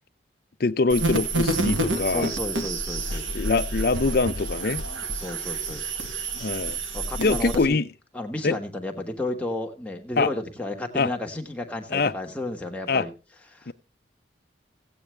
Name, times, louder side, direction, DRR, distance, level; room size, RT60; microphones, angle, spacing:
voice 1, 0.6-2.3 3.3-4.8 6.4-6.8 7.2-7.9 8.4-8.6 10.2-10.3 10.9-11.1 11.9-12.1 12.9-13.1 13.7-13.8, left 3 dB, 50° left, 0.5 m, -23 dB
sound 1, 0.9-7.6, right 2 dB, 90° right, 1.6 m, -28 dB
voice 2, 2.0-3.3 5.1-5.9 6.9-7.8 8.1-13.1 13.5-13.7, left 1 dB, 5° left, 1.3 m, -32 dB
16.0 x 8.7 x 3.2 m
head